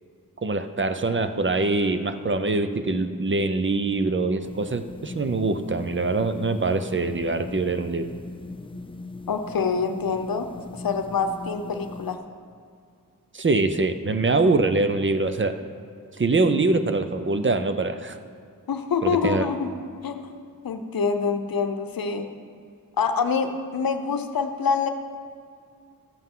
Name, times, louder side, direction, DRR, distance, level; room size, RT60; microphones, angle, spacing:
voice 1, 0.4-8.1 13.3-15.6 16.2-18.2 19.0-19.4, right 3 dB, 35° right, 9 dB, 0.6 m, -24 dB
sound 1, 4.4-12.2, left 3 dB, 15° left, 0.4 m, -40 dB
voice 2, 9.3-12.2 18.7-19.7 20.0-20.3 20.6-22.3 23.0-24.9, left 5 dB, 90° left, 7 dB, 0.7 m, -26 dB
13.0 x 7.9 x 3.7 m, 2.3 s
wide cardioid pair, 80°, 34 cm